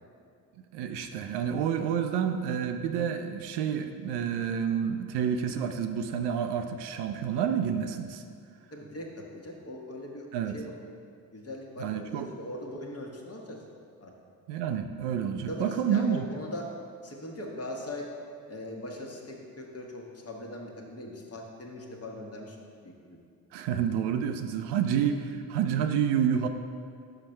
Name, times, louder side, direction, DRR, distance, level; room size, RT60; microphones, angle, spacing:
voice 1, 0.7-8.2 10.3-10.6 11.8-12.3 14.5-16.3 23.5-26.5, right 8 dB, 60° right, 7 dB, 0.5 m, -29 dB
voice 2, 8.7-9.1 9.3-10.3 10.5-10.8 11.3-13.6 14.0-14.1 15.5-16.7 17.0-18.1 18.5-23.2, left 1 dB, 30° left, 0 dB, 1.2 m, -40 dB
5.7 x 5.1 x 4.4 m, 2.3 s
hypercardioid pair, 45°, 46 cm